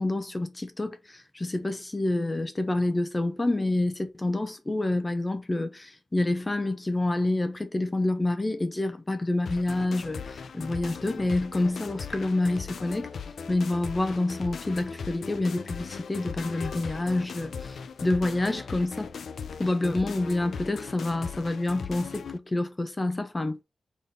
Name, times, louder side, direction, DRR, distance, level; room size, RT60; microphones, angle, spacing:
voice 1, 0.0-13.1 13.5-19.1 19.6-23.6, left 2 dB, 20° left, 0.5 m, -28 dB
sound 1, 9.5-22.4, left 6 dB, 90° left, 0.4 m, -38 dB
4.0 x 3.6 x 3.5 m
wide cardioid pair, 175°, 0 cm